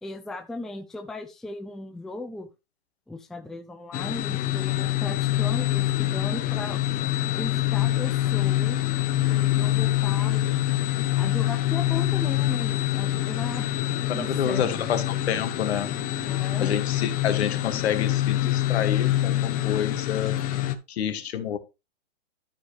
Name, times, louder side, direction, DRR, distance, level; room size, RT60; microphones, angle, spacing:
voice 1, 0.0-2.5 3.1-6.8 7.3-8.8 9.3-10.7 11.2-13.7 14.1-14.9 16.2-16.7, left 2 dB, ahead, 0.5 m, -37 dB
sound 1, 3.9-20.8, left 14 dB, 25° left, 1.0 m, -25 dB
voice 2, 14.1-15.9 16.6-20.4 20.9-21.6, left 9 dB, 75° left, 2.0 m, -28 dB
13.0 x 5.3 x 3.3 m
hypercardioid pair, 140°, 33 cm